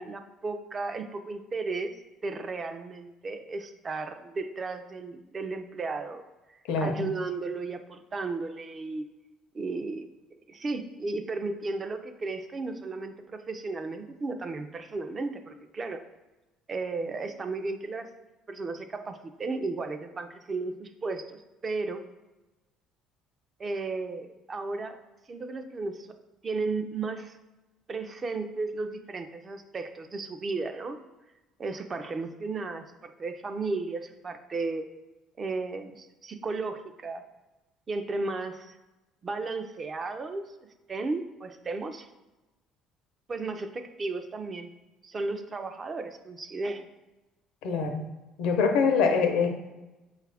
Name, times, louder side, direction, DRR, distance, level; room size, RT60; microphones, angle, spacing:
voice 1, 0.0-2.0 2.2-6.2 6.5-9.0 9.5-10.1 10.5-16.0 16.7-18.1 18.5-22.0 23.6-25.0 25.3-26.1 26.4-27.4 27.9-31.0 31.6-34.9 35.4-37.2 37.9-38.8 39.2-40.4 40.9-42.1 43.3-44.7 45.0-46.9, right 3 dB, 30° right, 7 dB, 0.3 m, -34 dB
voice 2, 6.7-7.1 47.6-48.0 48.4-49.5, left 5 dB, 80° left, 5 dB, 0.6 m, -24 dB
5.1 x 2.4 x 3.3 m, 1.1 s
cardioid pair, 120°, 0 cm